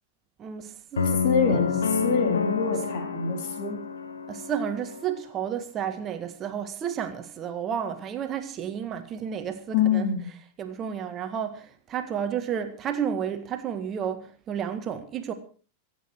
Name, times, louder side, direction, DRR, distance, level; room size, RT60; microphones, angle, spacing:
voice 1, 0.4-1.7 4.3-10.0 10.6-15.3, right 8 dB, 30° right, 1.7 m, -32 dB
sound 1, 1.0-5.1, left 5 dB, 70° left, 1.5 m, -28 dB
voice 2, 1.2-1.8 2.0-3.7 9.7-10.3, left 6 dB, 50° left, 4.0 m, -25 dB
25.5 x 8.5 x 4.5 m
figure-of-eight pair, 90°, 0 cm